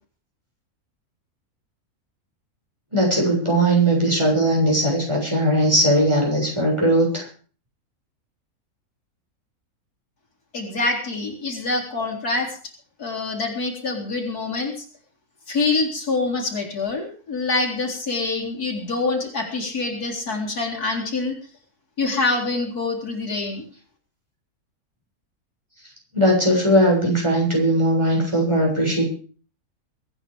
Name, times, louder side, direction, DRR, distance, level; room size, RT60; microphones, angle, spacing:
voice 1, 2.9-7.2 26.1-29.1, right 1 dB, 20° right, -2 dB, 7.3 m, -19 dB
voice 2, 10.5-12.5 13.0-14.7 15.5-21.3 22.0-23.6, left 3 dB, 85° left, 0 dB, 4.4 m, -25 dB
23.0 x 9.7 x 5.3 m, 0.42 s
omnidirectional pair, 1.6 m